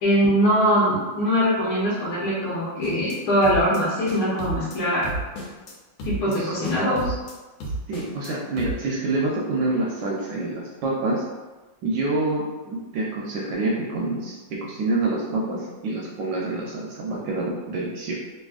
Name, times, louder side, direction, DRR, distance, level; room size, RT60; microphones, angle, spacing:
voice 1, 0.0-5.1 6.0-7.1, equal, 65° left, -8 dB, 1.2 m, -22 dB
sound 1, 2.8-3.2 3.4-3.8 4.1-4.8 5.0-5.7 6.0-6.4 6.6-7.3 7.6-8.3 8.6-8.7, right 2 dB, 90° left, 1.5 m, -32 dB
voice 2, 7.9-11.2 11.8-18.1, right 2 dB, 75° right, -3 dB, 1.1 m, -27 dB
3.3 x 2.5 x 2.4 m, 1.2 s
omnidirectional pair, 2.2 m